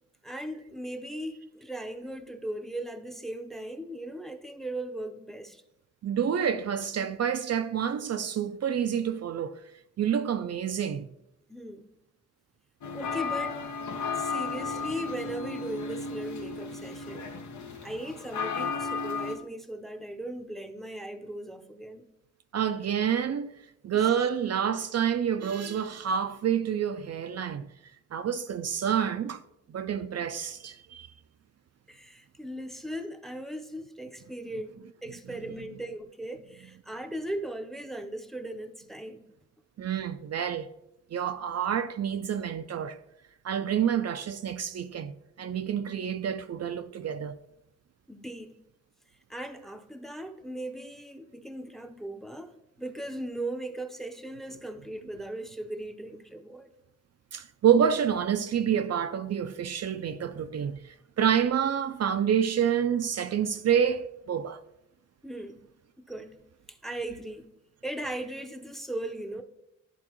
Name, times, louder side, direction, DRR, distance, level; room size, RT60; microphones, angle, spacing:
voice 1, 0.2-5.6 11.5-11.9 12.9-13.6 14.0-17.3 17.8-22.1 24.0-24.1 31.9-39.2 48.1-48.5 49.3-52.5 52.8-56.7 65.2-65.6 66.0-66.4 66.7-67.5 67.8-69.4, right 1 dB, ahead, 0.6 m, -38 dB
voice 2, 6.0-9.6 10.0-11.1 22.5-27.7 28.1-29.4 29.7-31.1 39.8-40.7 41.1-43.0 43.4-47.4 57.3-64.6, right 8 dB, 60° right, 0.4 m, -28 dB
sound 1, 12.8-19.4, left 4 dB, 70° left, 0.8 m, -34 dB
11.0 x 3.8 x 3.0 m
cardioid pair, 65°, 30 cm